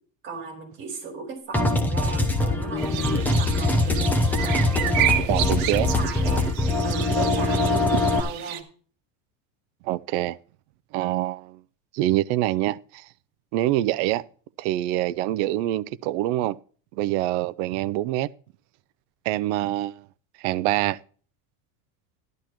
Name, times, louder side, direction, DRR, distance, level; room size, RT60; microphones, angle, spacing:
voice 1, 0.2-5.5 5.8-6.5 6.8-8.6, right 4 dB, 30° right, 4.5 m, -37 dB
sound 1, 1.5-8.2, left 2 dB, 5° left, 0.7 m, -22 dB
sound 2, 2.8-8.6, right 12 dB, 75° right, 1.5 m, -31 dB
voice 2, 5.3-5.9 9.8-10.4 10.9-11.6 11.9-13.1 13.5-14.2 14.6-16.6 16.9-18.3 19.2-20.0 20.4-21.0, right 15 dB, 55° right, 0.5 m, -25 dB
12.5 x 12.0 x 3.0 m
cardioid pair, 180°, 41 cm